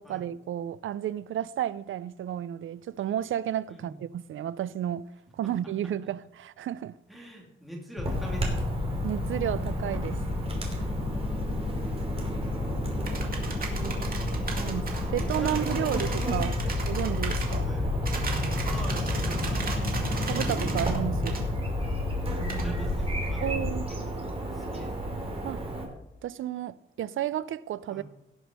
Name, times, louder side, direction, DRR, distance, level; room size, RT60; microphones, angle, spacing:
voice 1, 0.0-7.0 9.0-10.2 12.4-12.5 14.6-14.9 15.1-16.6 16.9-17.7 20.2-21.5 23.4-23.9 25.4-25.6 26.2-28.0, right 11 dB, 70° right, 0.5 m, -32 dB
voice 2, 7.1-8.7 15.1-16.3 16.6-16.8 17.5-17.9 18.6-19.7 22.6-24.2 24.5-25.1 27.9-28.0, equal, ahead, 2.9 m, -44 dB
sound 1, 8.0-23.8, left 2 dB, 50° left, 4.0 m, -31 dB
Chirp tweet / Buzz, 8.0-25.9, right 2 dB, 25° right, 2.9 m, -35 dB
sound 2, 13.0-17.6 18.0-21.0 21.2-21.4 22.5-22.7, right 4 dB, 45° right, 2.2 m, -37 dB
17.5 x 6.1 x 5.4 m
wide cardioid pair, 125°, 21 cm